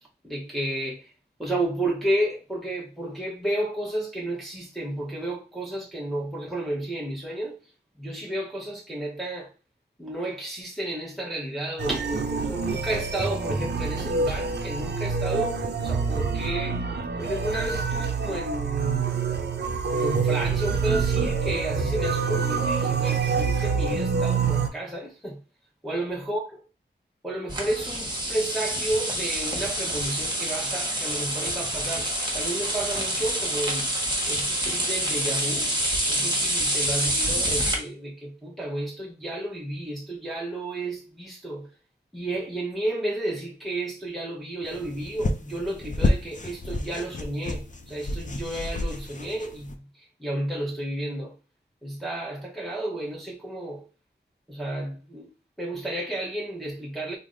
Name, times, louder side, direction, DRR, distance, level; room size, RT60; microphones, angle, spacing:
voice 1, 0.2-1.1 1.4-7.6 8.0-9.5 10.0-16.9 17.2-19.1 19.9-25.4 25.8-26.6 27.2-32.1 32.3-33.9 34.3-35.7 36.1-41.7 42.1-51.3 51.8-53.8 54.5-55.3 55.6-57.2, right 1 dB, ahead, 0.8 m, -32 dB
sound 1, 11.8-24.7, right 5 dB, 65° right, 0.5 m, -26 dB
sound 2, 27.5-37.7, right 1 dB, 25° right, 1.1 m, -27 dB
sound 3, 44.6-49.8, left 2 dB, 45° left, 0.6 m, -30 dB
3.3 x 2.1 x 3.7 m
wide cardioid pair, 55°, 19 cm